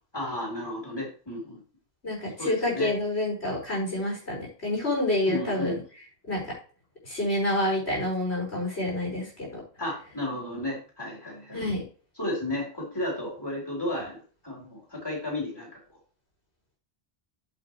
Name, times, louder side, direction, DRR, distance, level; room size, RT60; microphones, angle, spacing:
voice 1, 0.1-1.6 2.4-2.9 5.3-5.8 9.8-11.7 12.2-15.8, left 1 dB, 20° left, -3 dB, 4.1 m, -33 dB
voice 2, 2.0-5.7 6.3-6.5 7.0-9.6 11.5-11.8, left 1 dB, 80° left, -2 dB, 5.6 m, -28 dB
9.1 x 8.2 x 3.2 m, 0.38 s
omnidirectional pair, 1.1 m